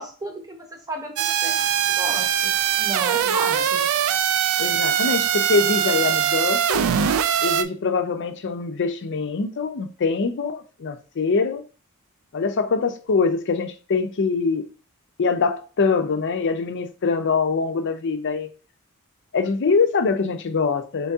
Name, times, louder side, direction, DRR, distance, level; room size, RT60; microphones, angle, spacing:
voice 1, 0.0-3.9, right 1 dB, 15° right, 0.9 m, -34 dB
sound 1, 1.2-7.6, right 9 dB, 65° right, 0.3 m, -22 dB
voice 2, 4.6-6.8 7.4-11.6 12.3-14.7 15.2-18.5 19.3-21.1, left 4 dB, 55° left, 0.5 m, -23 dB
4.4 x 2.7 x 3.4 m
head